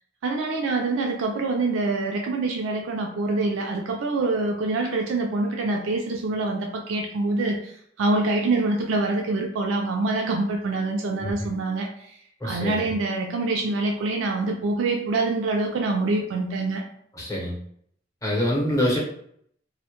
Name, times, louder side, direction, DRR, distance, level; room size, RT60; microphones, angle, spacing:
voice 1, 0.2-12.1 12.4-16.8, right 3 dB, 85° right, 2 dB, 0.4 m, -25 dB
voice 2, 12.4-12.9 17.2-17.6 18.2-19.0, left 1 dB, 20° left, -4 dB, 0.7 m, -25 dB
2.1 x 2.0 x 2.8 m, 0.67 s
head